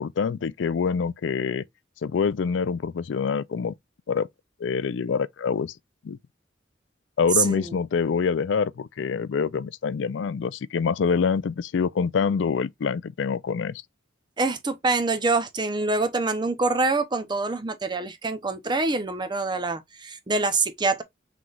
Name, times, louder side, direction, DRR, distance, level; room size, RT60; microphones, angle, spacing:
voice 1, 0.0-1.6 2.0-3.7 4.1-4.3 4.6-5.7 6.0-6.2 7.2-13.8, left 5 dB, 70° left, 0.4 m, -25 dB
voice 2, 7.3-7.8 14.4-21.0, right 3 dB, 25° right, 0.6 m, -25 dB
5.9 x 3.2 x 2.4 m
head